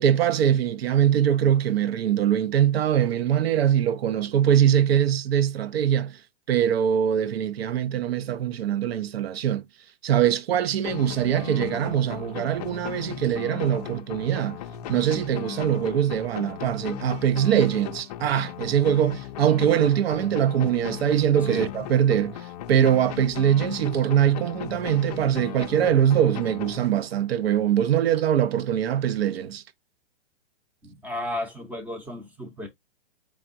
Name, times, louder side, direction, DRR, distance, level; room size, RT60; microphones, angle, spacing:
voice 1, 0.0-6.2 6.5-9.6 10.0-14.6 14.9-29.6, right 10 dB, 70° right, 0.6 m, -22 dB
sound 1, 10.8-27.4, left 12 dB, 40° left, 0.4 m, -37 dB
voice 2, 30.8-32.7, left 1 dB, 5° right, 0.6 m, -34 dB
3.6 x 3.5 x 2.5 m
hypercardioid pair, 135°, 31 cm